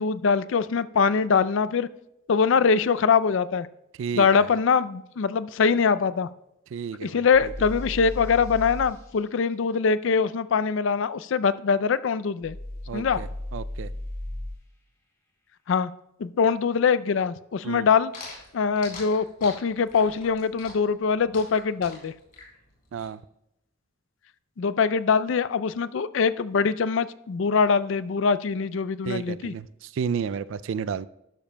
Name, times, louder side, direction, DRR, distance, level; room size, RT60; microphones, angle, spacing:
voice 1, 0.0-1.9 2.3-3.7 4.2-6.3 7.0-12.6 12.9-13.2 15.7-15.9 16.2-18.1 18.5-22.1 24.6-29.5, left 5 dB, 65° left, 16 dB, 0.4 m, -23 dB
voice 2, 4.0-4.5 6.7-7.5 12.9-13.9 17.6-17.9 22.9-23.2 29.0-31.1, right 6 dB, 65° right, 17 dB, 0.3 m, -32 dB
sound 1, 7.3-8.9 12.4-14.6, left 1 dB, 15° left, 1.7 m, -35 dB
sound 2, 18.1-23.1, left 3 dB, 45° left, 4.0 m, -43 dB
12.5 x 11.5 x 2.2 m, 0.83 s
head